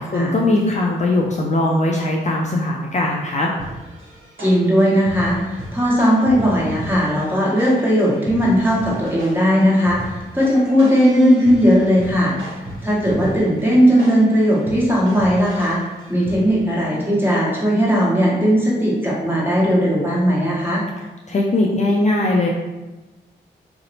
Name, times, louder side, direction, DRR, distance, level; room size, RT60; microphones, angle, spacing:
voice 1, 0.0-3.5 21.3-22.5, left 2 dB, 35° left, -2 dB, 0.4 m, -19 dB
sound 1, 3.6-16.7, right 1 dB, 70° right, 0.8 m, -36 dB
voice 2, 4.4-12.3 12.8-15.8 16.1-20.8, equal, 10° right, -6 dB, 1.2 m, -17 dB
2.6 x 2.0 x 2.8 m, 1.1 s
supercardioid pair, 40°, 20 cm